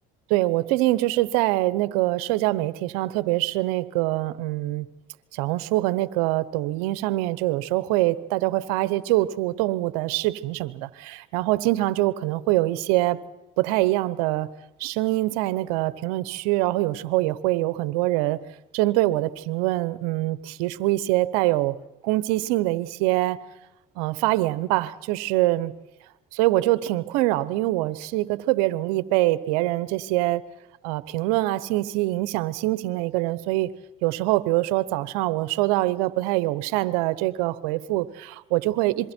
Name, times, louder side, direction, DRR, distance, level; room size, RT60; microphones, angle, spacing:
voice 1, 0.3-4.8 5.3-13.2 13.6-14.5 14.8-18.4 18.7-21.8 22.0-23.4 24.0-25.7 26.3-30.4 30.8-33.7 34.0-39.1, right 17 dB, 85° right, 17 dB, 1.0 m, -24 dB
27.0 x 22.5 x 4.5 m, 0.98 s
supercardioid pair, 80°, 19 cm